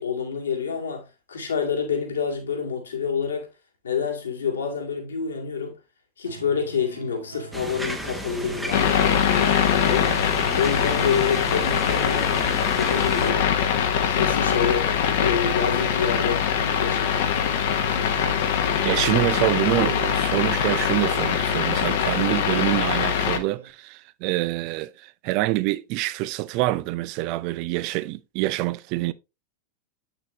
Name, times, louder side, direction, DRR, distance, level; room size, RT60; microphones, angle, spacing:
voice 1, 0.0-3.5 3.8-5.8 6.2-12.4 12.8-13.5 14.0-16.4 16.8-17.2, left 6 dB, 70° left, 2.2 m, -28 dB
sound 1, 6.2-23.7, right 4 dB, 75° right, 1.3 m, -42 dB
sound 2, 7.5-13.3, right 1 dB, 5° right, 1.0 m, -34 dB
sound 3, 8.7-23.4, left 8 dB, 55° left, 1.1 m, -23 dB
voice 2, 18.8-29.1, right 17 dB, 45° right, 0.5 m, -26 dB
8.8 x 6.0 x 3.0 m
figure-of-eight pair, 90°, 0 cm